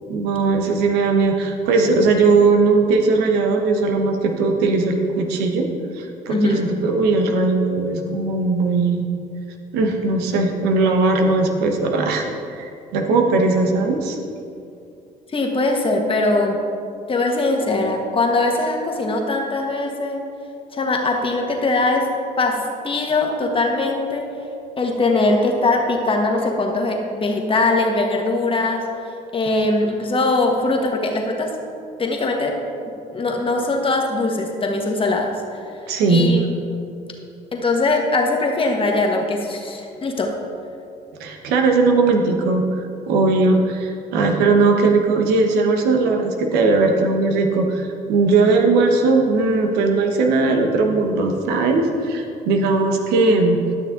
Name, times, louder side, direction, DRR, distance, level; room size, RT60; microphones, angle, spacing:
voice 1, 0.1-5.7 6.0-9.1 9.7-14.2 35.9-36.3 41.2-42.6 43.1-53.6, right 3 dB, 85° right, 3 dB, 1.0 m, -18 dB
voice 2, 6.3-6.7 15.3-16.6 17.1-20.2 20.7-22.1 22.4-24.2 24.8-28.9 29.3-31.5 32.0-32.6 33.1-35.6 36.1-36.5 37.5-40.4, left 2 dB, 35° left, 1 dB, 1.5 m, -21 dB
11.5 x 6.4 x 3.8 m, 2.5 s
supercardioid pair, 80°, 16 cm